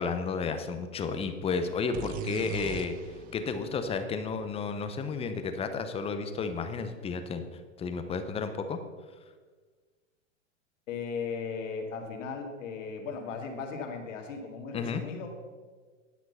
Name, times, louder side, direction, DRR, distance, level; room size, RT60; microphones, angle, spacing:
voice 1, 0.0-8.8 14.7-15.0, left 5 dB, 15° left, 8 dB, 0.7 m, -32 dB
sound 1, 1.9-5.6, right 9 dB, 25° right, 0.5 m, -42 dB
voice 2, 10.9-15.3, left 5 dB, 70° left, 3 dB, 2.1 m, -37 dB
10.5 x 6.0 x 5.5 m, 1.5 s
hypercardioid pair, 130°, 38 cm